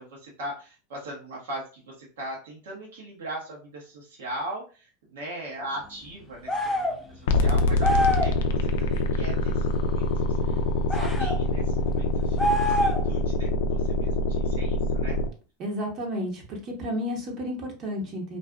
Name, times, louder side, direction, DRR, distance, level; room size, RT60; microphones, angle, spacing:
voice 1, 0.0-10.6 10.9-15.2, right 1 dB, 80° right, -3 dB, 0.9 m, -39 dB
sound 1, 6.5-7.0 7.8-8.4 10.9-11.4 12.4-13.2, equal, 15° left, 0.5 m, -25 dB
sound 2, 7.3-15.3, left 2 dB, 75° left, 0.3 m, -25 dB
voice 2, 15.6-18.4, equal, 45° right, 0 dB, 0.8 m, -32 dB
2.5 x 2.4 x 2.2 m, 0.35 s
hypercardioid pair, 100°, 0 cm